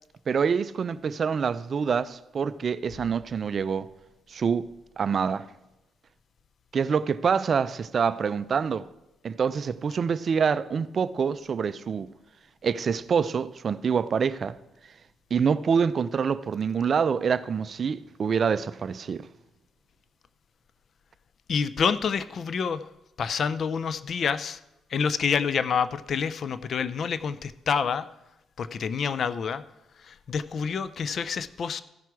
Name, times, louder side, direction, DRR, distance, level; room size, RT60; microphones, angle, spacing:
voice 1, 0.3-3.9 4.3-4.7 5.0-5.5 6.7-8.9 9.2-12.1 12.6-14.6 15.3-19.2, right 6 dB, 45° right, 0.4 m, -26 dB
voice 2, 21.5-22.9 23.2-24.6 24.9-28.1 28.6-29.6 30.0-31.8, left 6 dB, 55° left, 0.5 m, -28 dB
14.5 x 6.0 x 4.7 m
cardioid pair, 90°, 0 cm